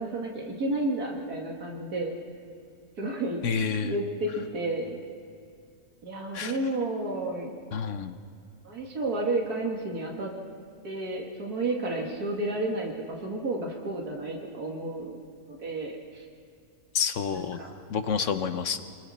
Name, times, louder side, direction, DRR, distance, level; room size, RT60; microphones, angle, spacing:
voice 1, 0.0-2.1 3.0-3.4 3.8-5.0 6.0-7.5 8.6-10.3 10.8-15.2 15.5-16.3 17.3-17.7, right 2 dB, 80° right, 0 dB, 2.4 m, -31 dB
voice 2, 3.4-3.9 6.3-6.5 7.7-8.2 16.9-17.6 17.9-18.8, left 6 dB, 60° left, 10 dB, 1.1 m, -28 dB
29.0 x 21.0 x 4.2 m, 2.3 s
omnidirectional pair, 1.6 m